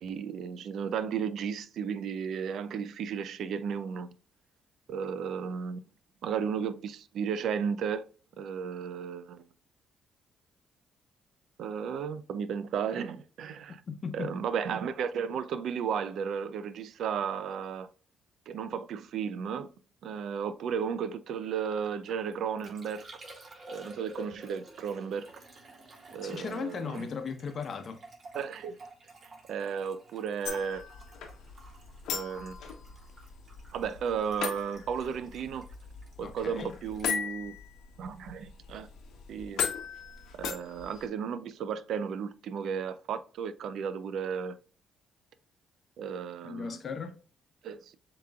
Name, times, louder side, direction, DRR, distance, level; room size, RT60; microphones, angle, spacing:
voice 1, 0.0-4.1 4.9-5.8 6.2-8.0 8.4-9.4 11.6-13.8 14.1-17.9 18.5-19.7 20.0-23.1 23.7-25.3 26.1-27.1 28.3-28.8 29.5-30.8 32.1-32.6 33.7-35.7 36.2-37.6 38.0-38.9 39.3-39.6 40.4-44.6 46.0-46.8 47.6-47.9, right 7 dB, 75° right, 0.5 m, -34 dB
voice 2, 13.9-14.3 26.2-28.0 36.2-36.7 46.4-47.1, left 5 dB, 50° left, 0.8 m, -37 dB
Liquid, 21.9-38.5 38.7-39.3, right 2 dB, 45° right, 2.2 m, -52 dB
sound 1, 30.4-41.1, left 7 dB, 80° left, 1.0 m, -39 dB
7.3 x 2.9 x 2.3 m
cardioid pair, 90°, 0 cm